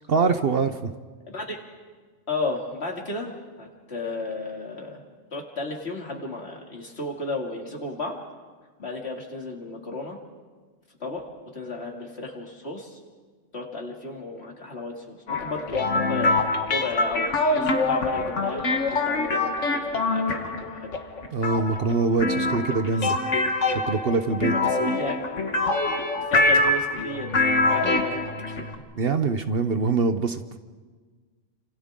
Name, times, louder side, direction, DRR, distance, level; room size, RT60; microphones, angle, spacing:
voice 1, 0.1-0.9 21.3-23.2 23.7-24.5 29.0-30.4, right 4 dB, 55° right, 9 dB, 1.0 m, -24 dB
voice 2, 1.3-1.6 2.3-5.0 5.3-8.2 8.8-10.2 11.0-11.2 11.5-13.0 13.5-20.9 23.0-23.1 24.5-25.3 26.2-28.2 28.5-28.6, left 2 dB, 55° left, 0 dB, 2.9 m, -34 dB
sound 1, 15.3-28.8, left 2 dB, 70° left, 1.8 m, -24 dB
29.5 x 26.5 x 3.7 m, 1.5 s
omnidirectional pair, 1.3 m